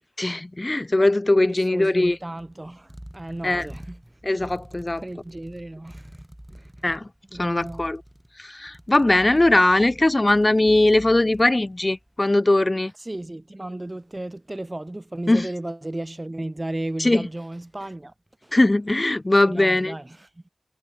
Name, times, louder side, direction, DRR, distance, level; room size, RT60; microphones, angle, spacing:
voice 1, 0.2-2.2 3.4-3.7 4.2-5.0 6.8-7.1 7.4-8.0 8.4-12.9 15.3-15.5 17.0-17.2 18.5-19.9, left 2 dB, 30° left, 0.4 m, -20 dB
voice 2, 1.5-4.2 4.9-6.2 6.5-6.9 7.3-7.9 13.0-18.1 18.4-18.6 19.4-20.4, right 1 dB, 25° right, 1.4 m, -34 dB
sound 1, 1.6-12.2, equal, 10° right, 3.6 m, -46 dB
cardioid pair, 45°, 0 cm